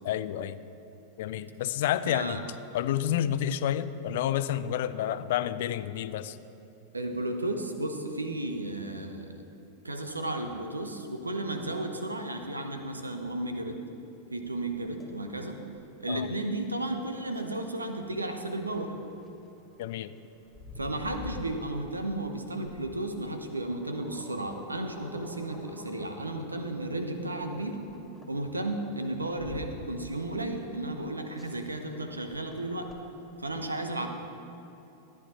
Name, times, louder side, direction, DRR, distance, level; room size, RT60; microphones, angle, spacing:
voice 1, 0.0-0.6 1.2-2.4 2.7-6.4 16.1-16.3 19.8-20.1, left 11 dB, 55° left, 14 dB, 0.4 m, -29 dB
voice 2, 2.0-2.4 6.9-9.4 9.8-13.8 14.3-15.6 16.0-18.9 20.8-27.8 28.3-32.9 33.4-34.1, right 1 dB, 80° right, 6 dB, 0.9 m, -33 dB
sound 1, 14.7-33.6, left 3 dB, 5° left, 2.2 m, -49 dB
13.5 x 9.7 x 4.2 m, 2.9 s
figure-of-eight pair, 90°, 0 cm